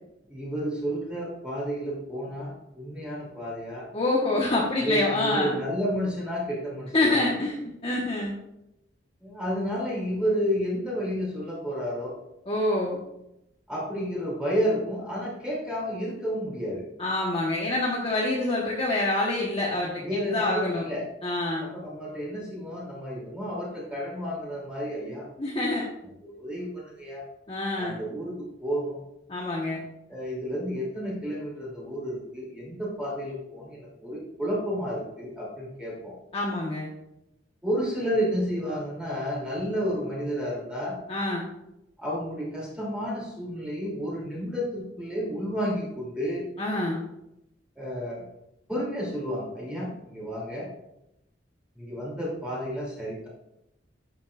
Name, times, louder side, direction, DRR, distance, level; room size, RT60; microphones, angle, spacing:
voice 1, 0.3-3.9 4.8-7.3 9.2-12.2 13.7-16.8 20.0-21.0 21.6-25.3 26.2-27.2 27.8-29.0 30.1-36.1 37.6-41.0 42.0-46.4 47.8-48.2 48.7-50.7 51.8-53.3, equal, 5° right, -5 dB, 2.8 m, -31 dB
voice 2, 3.9-5.6 6.9-7.6 7.8-8.4 12.5-13.0 17.0-20.8 21.2-21.6 25.4-25.8 27.5-28.0 29.3-29.8 36.3-36.9 41.1-41.5 46.6-47.0, left 2 dB, 35° left, -4 dB, 1.3 m, -26 dB
11.5 x 7.6 x 2.5 m, 0.85 s
head